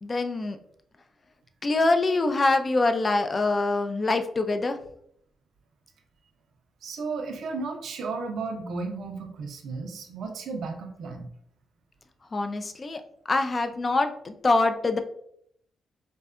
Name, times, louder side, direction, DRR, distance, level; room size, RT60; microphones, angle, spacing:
voice 1, 0.0-0.6 1.6-4.8 12.3-13.0 13.3-15.0, left 2 dB, 35° left, 7 dB, 0.3 m, -24 dB
voice 2, 6.8-11.3, right 4 dB, 75° right, 4 dB, 0.4 m, -34 dB
2.6 x 2.2 x 2.3 m, 0.69 s
cardioid pair, 75°, 0 cm